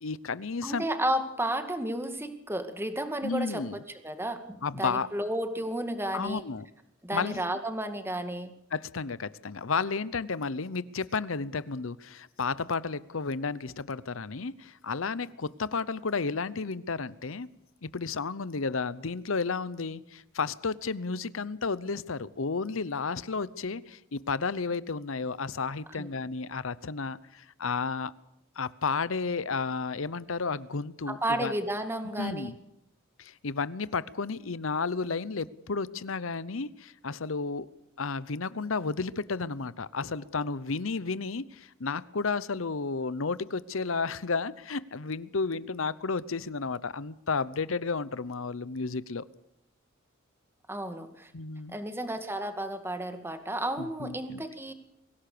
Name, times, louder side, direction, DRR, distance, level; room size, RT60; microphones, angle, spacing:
voice 1, 0.0-0.9 3.2-3.8 4.6-5.1 6.1-6.7 7.1-7.4 8.7-17.5 17.8-28.1 28.6-31.5 32.2-32.6 33.2-37.7 38.0-49.2 51.3-51.8 53.8-54.4, left 4 dB, 70° left, 18 dB, 0.8 m, -32 dB
voice 2, 0.6-3.6 4.0-6.4 7.0-8.5 26.0-26.1 31.1-32.5 50.7-51.3 51.7-54.7, right 1 dB, 10° right, 8 dB, 2.1 m, -32 dB
24.0 x 16.5 x 6.8 m, 0.79 s
head